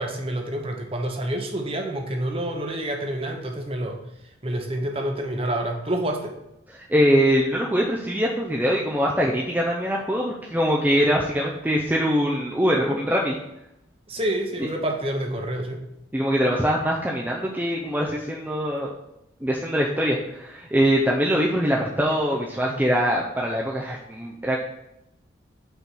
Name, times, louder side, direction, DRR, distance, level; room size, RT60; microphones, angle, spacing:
voice 1, 0.0-4.0 4.4-6.3 14.1-15.8 22.7-22.8, right 1 dB, 30° right, 2 dB, 1.0 m, -28 dB
voice 2, 6.8-13.4 14.6-14.7 16.1-18.9 19.4-24.6, equal, 10° right, -2 dB, 0.6 m, -23 dB
5.6 x 4.3 x 6.1 m, 0.86 s
head